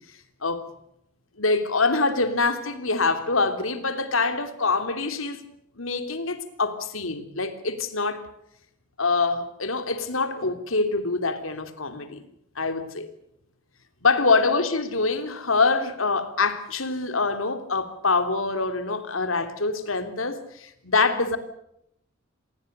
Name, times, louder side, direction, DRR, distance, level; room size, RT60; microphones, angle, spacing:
voice 1, 1.4-5.4 5.8-8.2 9.0-12.2 12.5-13.1 14.0-21.4, left 3 dB, 85° left, 3.2 m, -25 dB
27.5 x 20.5 x 6.8 m
head